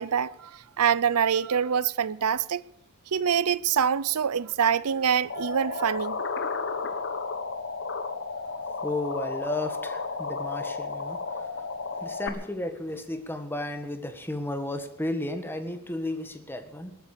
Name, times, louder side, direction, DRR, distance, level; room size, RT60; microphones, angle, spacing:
voice 1, 0.0-2.6 3.1-6.2, right 7 dB, 85° right, 0.6 m, -25 dB
sound 1, 5.3-12.3, left 4 dB, 55° left, 1.5 m, -33 dB
voice 2, 8.8-17.0, left 1 dB, 10° left, 1.6 m, -34 dB
20.5 x 9.2 x 6.8 m
head